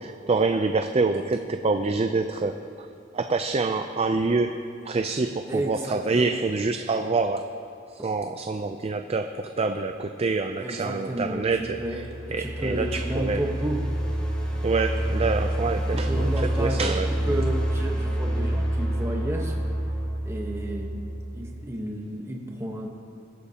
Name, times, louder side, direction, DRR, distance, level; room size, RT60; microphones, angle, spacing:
voice 1, 0.0-2.9 3.1-4.6 4.9-7.5 7.9-12.1 12.3-13.4 14.6-17.1, right 3 dB, 30° right, 7 dB, 0.4 m, -26 dB
voice 2, 5.5-6.4 10.6-13.8 15.9-16.9 17.3-19.6 20.2-22.9, right 1 dB, 15° right, 0 dB, 1.1 m, -32 dB
sound 1, 11.5-21.6, right 1 dB, 5° left, 2.8 m, -28 dB
21.0 x 12.0 x 2.9 m, 2.4 s
head